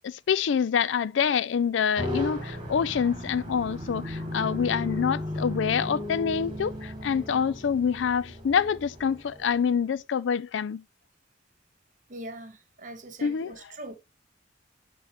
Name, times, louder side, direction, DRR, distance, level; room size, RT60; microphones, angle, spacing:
voice 1, 0.0-10.8 13.2-13.5, left 7 dB, 80° left, 0.4 m, -26 dB
sound 1, 2.0-9.7, left 1 dB, 25° right, 1.7 m, -35 dB
voice 2, 12.1-14.0, right 1 dB, 45° right, 1.2 m, -42 dB
10.0 x 3.7 x 3.0 m
head